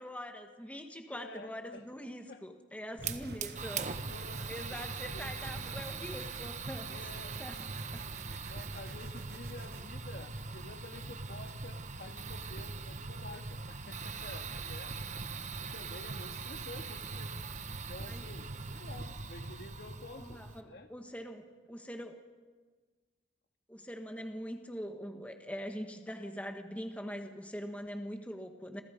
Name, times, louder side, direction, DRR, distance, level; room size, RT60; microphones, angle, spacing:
voice 1, 0.0-3.9 4.5-6.9 7.4-7.6 7.9-8.1 18.1-18.2 20.2-22.2 23.7-28.8, equal, 10° left, 4 dB, 1.7 m, -43 dB
voice 2, 1.1-1.8 2.3-2.4 3.0-3.4 3.8-5.3 6.9-7.3 7.7-7.9 8.3-14.9 15.6-17.3 17.7-20.9, left 2 dB, 60° left, 5 dB, 2.1 m, -50 dB
Fire, 3.0-20.6, right 4 dB, 40° right, 1.4 m, -41 dB
sound 1, 3.0-6.5 6.9-9.9, right 4 dB, 60° right, 1.5 m, -53 dB
28.5 x 27.5 x 5.4 m, 1.4 s
head